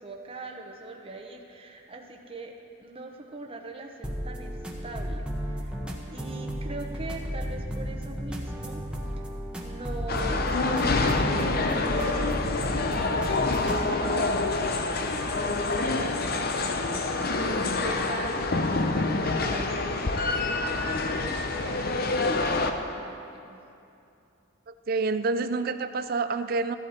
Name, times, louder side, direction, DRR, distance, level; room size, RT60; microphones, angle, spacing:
voice 1, 0.0-2.5 2.8-4.6 4.8-5.8 6.1-8.8 9.2-9.3 9.6-14.3 14.8-23.6, right 2 dB, 25° right, 1 dB, 0.9 m, -41 dB
sound 1, 4.0-13.8, equal, 5° right, 1.1 m, -34 dB
sound 2, 10.1-22.7, left 3 dB, 45° left, 0.7 m, -27 dB
voice 2, 24.7-26.7, right 3 dB, 45° right, 11 dB, 0.4 m, -28 dB
15.0 x 11.5 x 4.4 m, 2.7 s
head